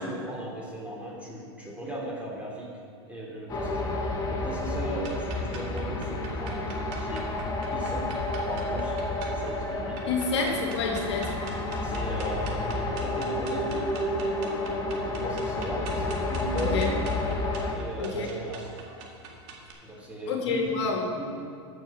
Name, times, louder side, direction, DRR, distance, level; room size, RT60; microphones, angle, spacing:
voice 1, 0.0-2.8 3.1-7.3 7.7-10.5 11.8-17.0 17.7-18.8 19.8-20.6 21.1-21.2, right 1 dB, 10° right, -3 dB, 3.3 m, -38 dB
sound 1, 3.5-17.7, left 2 dB, 25° left, 1.7 m, -30 dB
sound 2, 5.0-19.7, right 5 dB, 55° right, 2.1 m, -45 dB
voice 2, 10.1-11.3 16.5-16.9 18.0-18.3 20.3-21.1, left 4 dB, 75° left, 1 dB, 1.9 m, -28 dB
14.0 x 6.5 x 5.7 m, 2.3 s
hypercardioid pair, 105°, 15 cm